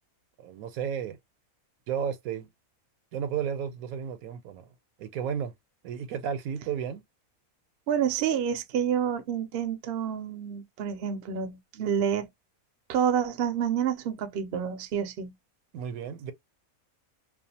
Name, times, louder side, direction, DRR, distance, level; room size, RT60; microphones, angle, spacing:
voice 1, 0.4-1.2 1.9-2.5 3.1-4.7 5.0-5.5 5.8-7.0 15.7-16.3, right 8 dB, 80° right, 1.0 m, -33 dB
voice 2, 7.9-12.3 12.9-15.3, right 8 dB, 60° right, 0.6 m, -28 dB
2.5 x 2.3 x 2.7 m
omnidirectional pair, 1.5 m